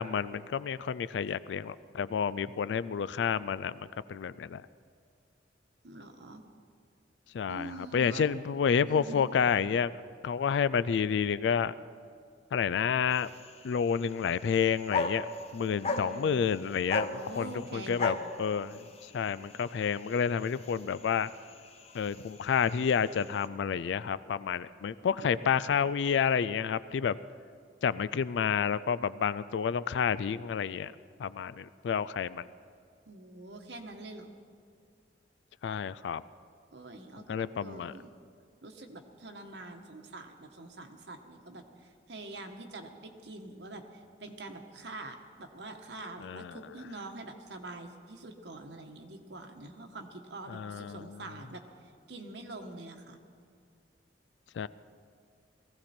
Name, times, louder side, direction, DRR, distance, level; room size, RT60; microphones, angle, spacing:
voice 1, 0.0-4.6 7.3-9.9 10.2-11.7 12.5-13.3 13.6-15.3 15.5-21.3 21.9-27.2 27.8-30.9 31.2-32.5 35.6-36.2 37.3-37.9 46.2-46.6 50.5-51.1 54.6-54.7, left 7 dB, 85° left, 17 dB, 0.3 m, -30 dB
voice 2, 5.8-6.4 7.5-8.3 8.9-9.3 15.9-16.4 17.1-18.3 25.2-25.7 33.1-34.3 36.7-38.1 38.6-53.2, right 2 dB, 80° right, 4 dB, 1.3 m, -45 dB
sound 1, 13.1-23.5, left 3 dB, 35° left, 0.8 m, -39 dB
19.0 x 16.0 x 4.4 m, 2.3 s
head